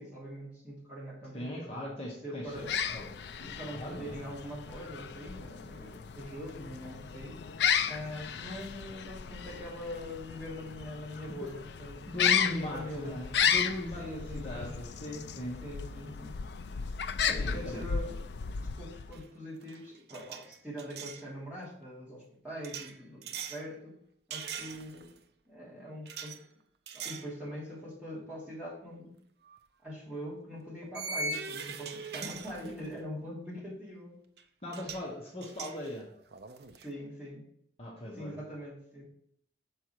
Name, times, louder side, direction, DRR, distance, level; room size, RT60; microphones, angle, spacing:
voice 1, 0.0-2.7 3.5-7.4 7.9-13.2 14.0-14.7 15.6-16.4 17.3-18.2 18.5-24.0 24.3-25.1 25.5-26.4 26.9-29.1 29.8-34.1 36.8-37.5 38.2-39.0, equal, 10° right, -8 dB, 2.9 m, -43 dB
voice 2, 1.3-3.1 3.4-4.2 11.3-11.5 12.1-15.6 17.3-17.8 34.6-36.1 37.8-38.4, left 1 dB, 30° left, -4 dB, 1.1 m, -39 dB
sound 1, 2.5-19.2, left 7 dB, 65° left, 0.4 m, -34 dB
sound 2, 19.1-19.4 19.6-21.2 22.6-23.6 24.3-25.2 26.1-26.4 26.9-27.3 27.8-27.9 29.5-29.6 30.9-33.0 34.4-34.5 34.7-35.1 35.4-36.9, right 4 dB, 55° right, 0.5 m, -41 dB
6.4 x 4.5 x 4.5 m, 0.68 s
head